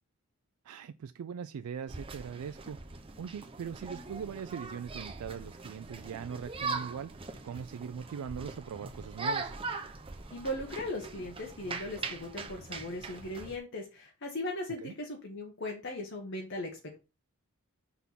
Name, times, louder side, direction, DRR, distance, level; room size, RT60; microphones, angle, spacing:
voice 1, 0.6-2.8 3.2-7.2 7.4-9.5 14.8-14.9, right 7 dB, 80° right, 0.3 m, -40 dB
sound 1, 1.9-13.6, right 3 dB, 25° right, 0.6 m, -41 dB
voice 2, 10.3-16.9, left 1 dB, 55° left, 1.2 m, -38 dB
6.0 x 3.6 x 5.8 m
head